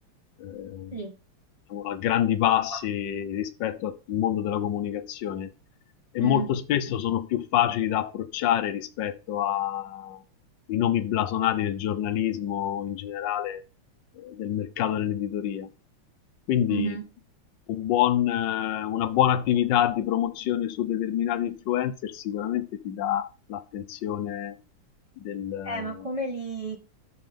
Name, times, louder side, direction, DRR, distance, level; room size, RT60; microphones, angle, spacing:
voice 1, 0.4-0.9 1.7-5.5 6.1-10.2 10.7-13.6 14.2-15.7 16.5-17.0 17.7-24.5 25.2-26.1, left 11 dB, 65° left, 1.4 m, -27 dB
voice 2, 16.7-17.0 18.9-19.0 25.6-26.8, right 4 dB, 45° right, 0.4 m, -32 dB
13.0 x 5.7 x 3.5 m
omnidirectional pair, 2.4 m